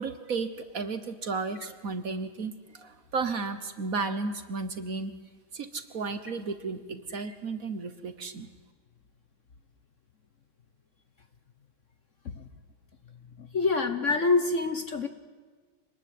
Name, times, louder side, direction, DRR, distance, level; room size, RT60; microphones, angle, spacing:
voice 1, 0.0-5.1 5.5-8.5, right 4 dB, 50° right, 11 dB, 1.5 m, -33 dB
voice 2, 13.4-15.1, left 3 dB, 45° left, 10 dB, 1.2 m, -26 dB
26.0 x 20.0 x 9.4 m, 1.5 s
omnidirectional pair, 2.2 m